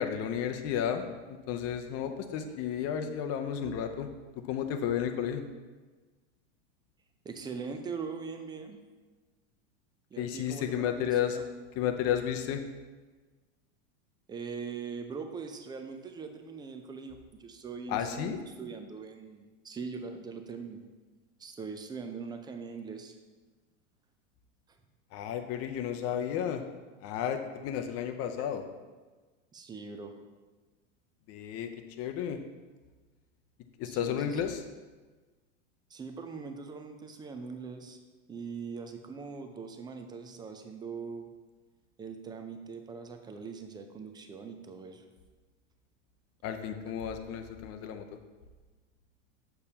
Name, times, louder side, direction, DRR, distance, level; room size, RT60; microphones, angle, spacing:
voice 1, 0.0-4.1 4.5-5.4 10.2-11.4 11.8-12.6 17.9-18.4 25.1-26.6 27.0-28.6 31.3-31.7 32.0-32.4 33.8-34.6 46.4-48.0, left 9 dB, 40° left, 6 dB, 0.7 m, -32 dB
voice 2, 7.2-8.8 10.1-11.4 14.3-20.9 21.4-23.1 29.5-30.1 33.9-34.4 35.9-38.0 38.3-41.3 42.0-45.0, right 5 dB, 10° right, 6 dB, 0.4 m, -41 dB
6.8 x 6.8 x 2.8 m, 1.3 s
hypercardioid pair, 115°, 38 cm